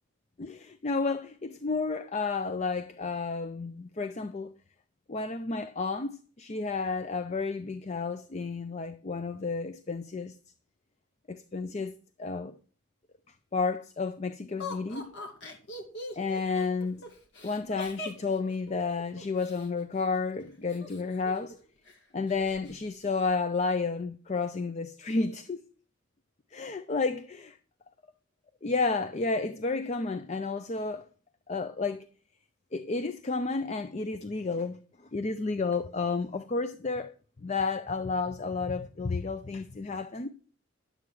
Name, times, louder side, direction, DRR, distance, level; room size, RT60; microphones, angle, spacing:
voice 1, 0.4-4.5 5.1-10.4 11.3-11.9 12.2-12.5 13.5-15.1 16.2-17.0 17.4-21.6 22.1-25.6 26.5-27.6 28.6-31.1 31.5-32.0 32.7-34.8 35.1-40.3, left 4 dB, 35° left, 0.5 m, -31 dB
Laughter, 14.6-19.7 20.7-21.6 21.9-22.0 22.3-22.7, left 2 dB, 55° left, 2.1 m, -41 dB
11.0 x 7.7 x 4.7 m
head